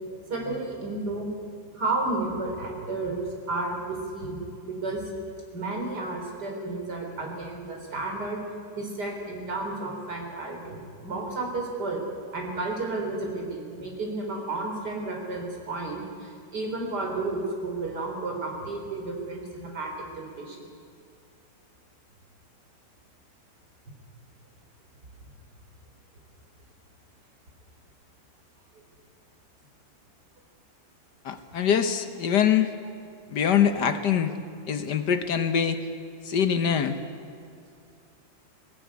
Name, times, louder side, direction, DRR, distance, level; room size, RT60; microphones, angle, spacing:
voice 1, 0.3-1.3 1.7-3.2 3.5-5.0 5.5-8.4 8.8-12.0 12.3-20.6, right 2 dB, 60° right, 1 dB, 4.3 m, -32 dB
voice 2, 31.2-32.7 33.3-34.3 34.7-35.8 36.2-37.0, left 8 dB, 65° left, 9 dB, 1.6 m, -23 dB
19.5 x 17.5 x 9.6 m, 2.4 s
omnidirectional pair, 2.0 m